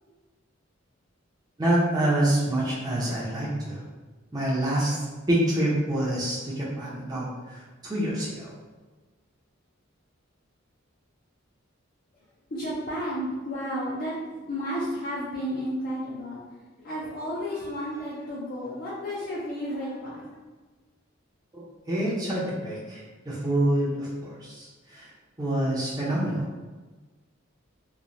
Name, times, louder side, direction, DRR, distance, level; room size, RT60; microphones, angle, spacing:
voice 1, 1.6-3.8 4.3-8.5 21.5-25.1 25.4-26.5, right 1 dB, 20° right, -7 dB, 0.5 m, -27 dB
voice 2, 12.5-16.4 16.8-20.3, equal, 45° left, -7 dB, 0.5 m, -32 dB
3.0 x 2.0 x 2.5 m, 1.3 s
head